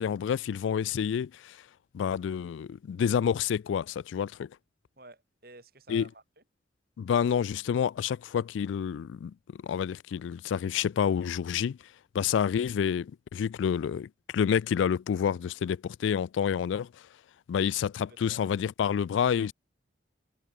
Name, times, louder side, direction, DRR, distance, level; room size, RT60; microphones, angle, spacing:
voice 1, 0.0-1.6 1.9-4.5 5.9-6.1 7.0-9.3 9.6-11.8 12.1-16.9 17.5-19.5, left 8 dB, 85° left, 0.3 m, -28 dB
voice 2, 5.0-6.4 17.6-17.7 18.0-18.5, right 2 dB, 55° right, 6.3 m, -52 dB
head